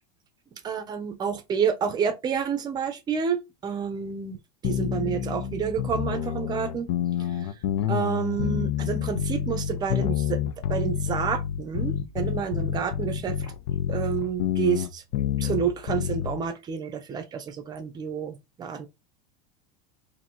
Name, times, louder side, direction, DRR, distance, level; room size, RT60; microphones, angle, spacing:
voice 1, 0.6-4.4 4.6-6.9 7.3-7.4 7.9-10.4 10.7-13.4 13.9-15.0 15.4-18.9, right 7 dB, 20° right, 0.6 m, -29 dB
sound 1, 4.6-16.4, left 10 dB, 65° left, 0.7 m, -28 dB
2.8 x 2.7 x 4.3 m
supercardioid pair, 155°, 20 cm